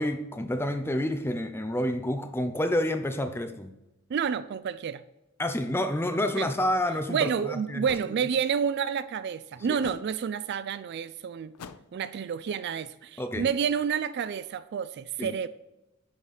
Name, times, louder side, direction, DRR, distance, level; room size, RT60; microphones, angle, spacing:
voice 1, 0.0-3.8 5.4-7.9 9.7-9.8 13.2-13.5 15.2-15.3, left 1 dB, 10° left, 0.5 m, -29 dB
voice 2, 4.1-5.0 6.4-6.5 7.1-11.5 11.9-15.5, right 7 dB, 50° right, 0.3 m, -29 dB
sound 1, 6.9-7.0 7.9-8.1 9.8-10.1 11.6-12.0, left 6 dB, 90° left, 0.5 m, -44 dB
10.5 x 4.2 x 4.8 m
head